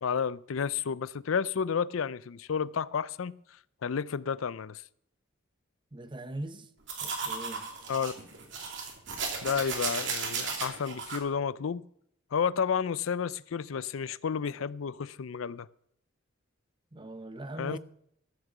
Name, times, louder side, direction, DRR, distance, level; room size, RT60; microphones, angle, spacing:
voice 1, 0.0-3.4 3.8-4.8 7.9-8.1 9.4-11.8 12.3-15.7 17.6-17.8, left 6 dB, 90° left, 0.5 m, -31 dB
voice 2, 5.9-6.7 7.0-7.7 16.9-17.8, right 1 dB, 25° right, 0.8 m, -40 dB
sound 1, 6.9-11.2, right 5 dB, 65° right, 2.6 m, -35 dB
14.0 x 6.6 x 7.3 m
head